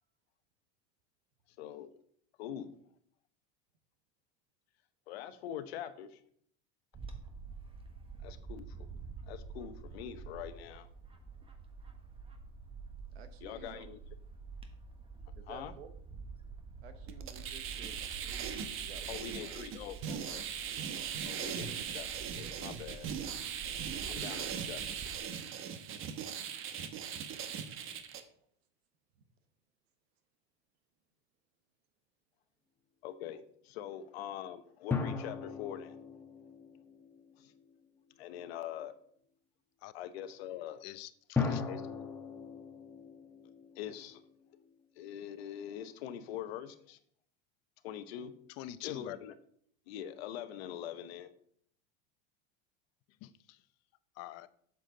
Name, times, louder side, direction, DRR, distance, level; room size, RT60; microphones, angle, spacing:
voice 1, 1.6-1.9 2.4-2.7 5.1-6.2 8.2-8.9 9.3-10.9 13.4-14.0 15.5-15.7 19.1-20.4 21.2-23.1 24.1-24.8 33.0-36.0 37.4-37.5 38.2-38.9 39.9-40.8 41.7-41.8 43.8-44.2 45.0-47.0 47.8-48.3 48.8-49.3 49.9-51.3, left 10 dB, 85° left, 11 dB, 0.9 m, -43 dB
Bird / Wind, 6.9-25.2, right 4 dB, 20° right, 1.3 m, -48 dB
voice 2, 13.1-13.8 15.4-15.9 16.8-19.6 21.3-21.6 24.0-24.7, right 6 dB, 90° right, 10 dB, 1.1 m, -53 dB
sound 1, 17.1-28.2, right 8 dB, 45° right, 1.0 m, -39 dB
sound 2, 34.9-37.7 41.4-44.7, left 5 dB, 5° left, 1.1 m, -38 dB
voice 3, 40.8-41.6 48.6-49.2 53.2-53.6 54.2-54.5, left 13 dB, 55° left, 15 dB, 0.6 m, -45 dB
7.6 x 7.1 x 3.9 m, 0.65 s
supercardioid pair, 110°, 30 cm